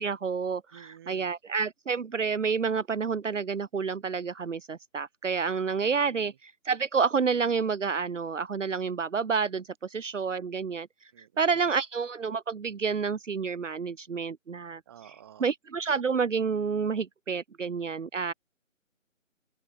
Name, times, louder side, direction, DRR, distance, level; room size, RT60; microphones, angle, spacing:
voice 1, 0.0-10.9 11.4-14.8 15.4-18.3, right 5 dB, 65° right, 1.1 m, -29 dB
voice 2, 0.7-1.3 5.8-6.4 11.1-11.8 14.9-15.5, right 10 dB, 20° right, 7.5 m, -52 dB
open air
hypercardioid pair, 175°, 40 cm